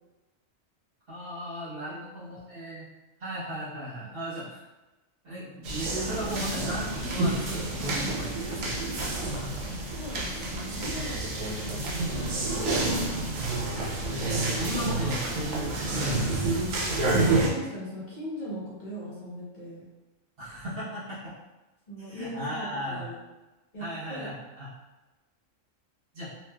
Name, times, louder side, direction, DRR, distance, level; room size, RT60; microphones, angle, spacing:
voice 1, 1.1-2.9 3.2-4.6 5.2-9.5 14.6-16.5 20.4-21.3 22.1-23.1 23.8-24.7 26.1-26.3, equal, 50° right, -9 dB, 1.1 m, -36 dB
sound 1, 5.6-17.5, right 2 dB, 85° right, 1.1 m, -29 dB
voice 2, 9.9-13.3 17.1-19.8 21.9-23.1 23.7-24.3, equal, 40° left, -10 dB, 1.0 m, -40 dB
3.0 x 2.8 x 2.2 m, 1.1 s
omnidirectional pair, 1.3 m